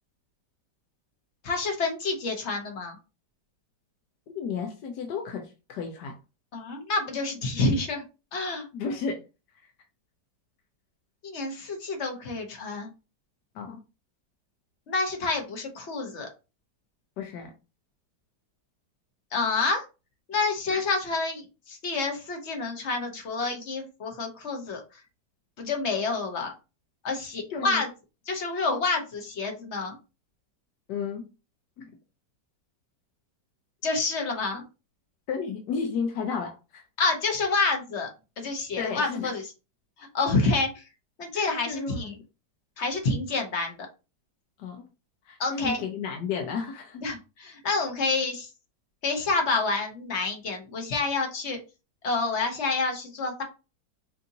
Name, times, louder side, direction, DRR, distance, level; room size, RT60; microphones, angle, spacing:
voice 1, 1.4-3.0 6.5-8.0 8.3-8.7 11.2-12.9 14.9-16.3 19.3-19.8 20.3-24.8 25.6-26.5 27.0-27.9 28.3-30.0 33.8-34.6 37.0-38.1 38.4-39.4 40.1-40.8 41.2-42.1 42.8-43.7 45.4-45.8 47.0-48.5 49.0-51.6 52.0-53.4, left 3 dB, 45° left, 3 dB, 1.1 m, -28 dB
voice 2, 4.3-6.2 8.7-9.2 9.6-9.7 13.5-13.8 17.2-17.5 20.7-20.8 27.5-27.8 30.9-31.2 31.8-31.9 35.3-36.9 38.8-39.3 40.4-40.6 41.3-42.1 44.6-44.8 45.3-47.0, left 5 dB, 75° left, 3 dB, 1.3 m, -33 dB
5.5 x 2.6 x 2.7 m, 0.29 s
omnidirectional pair, 1.9 m